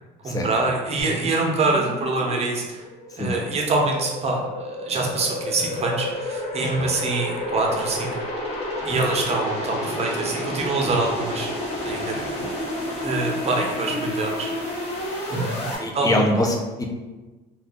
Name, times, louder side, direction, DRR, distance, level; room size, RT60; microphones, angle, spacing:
voice 1, 0.2-2.8 3.1-8.1 8.8-11.5 11.8-12.2 13.0-14.5 15.3-16.2, right 3 dB, 40° right, 0 dB, 0.7 m, -25 dB
sound 1, 1.0-15.8, left 1 dB, 40° left, 1.0 m, -30 dB
voice 2, 12.1-12.5 15.8-16.8, left 1 dB, 20° left, 1 dB, 0.5 m, -25 dB
2.5 x 2.3 x 3.5 m, 1.2 s
cardioid pair, 110°, 17 cm